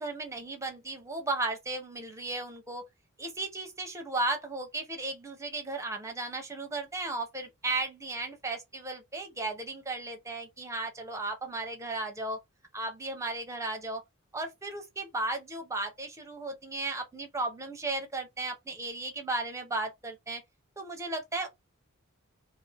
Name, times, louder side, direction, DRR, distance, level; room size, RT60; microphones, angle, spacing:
voice 1, 0.0-2.8 3.2-12.4 12.7-14.0 14.3-20.4 20.8-21.5, right 2 dB, 15° right, 0.8 m, -35 dB
2.7 x 2.6 x 3.3 m
head